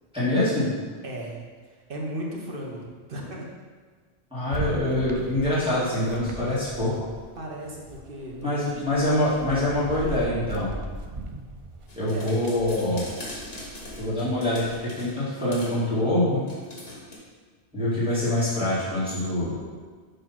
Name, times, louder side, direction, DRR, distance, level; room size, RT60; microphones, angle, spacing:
voice 1, 0.1-0.7 4.3-7.1 8.4-10.7 12.0-13.1 14.0-16.4 17.7-19.6, left 1 dB, 5° right, -11 dB, 2.0 m, -25 dB
voice 2, 1.0-1.4 1.9-3.5 7.4-8.8 9.3-10.3 12.1-12.3, right 1 dB, 60° right, -2 dB, 1.2 m, -36 dB
sound 1, 4.5-7.3 7.6-14.8, right 2 dB, 40° right, 0.5 m, -39 dB
sound 2, 11.9-15.2 15.5-15.8 16.5-17.2, left 1 dB, 65° left, 1.5 m, -41 dB
6.9 x 3.2 x 5.7 m, 1.5 s
omnidirectional pair, 1.1 m